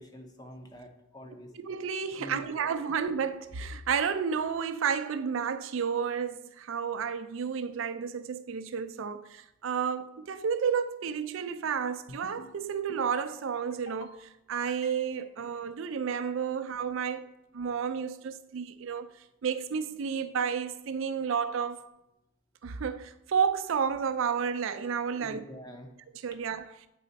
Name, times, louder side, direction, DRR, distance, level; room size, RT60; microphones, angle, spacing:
voice 1, 0.0-1.5 2.2-2.7 25.1-25.9, equal, 20° left, 0.7 m, -46 dB
voice 2, 1.6-17.2 17.5-19.1 19.4-21.9 22.6-25.4 26.2-26.7, right 6 dB, 60° right, 0.4 m, -31 dB
sound 1, 12.1-12.5 12.9-13.3 13.7-14.1 14.5-15.3, left 2 dB, 60° left, 0.7 m, -48 dB
8.4 x 4.1 x 4.0 m
head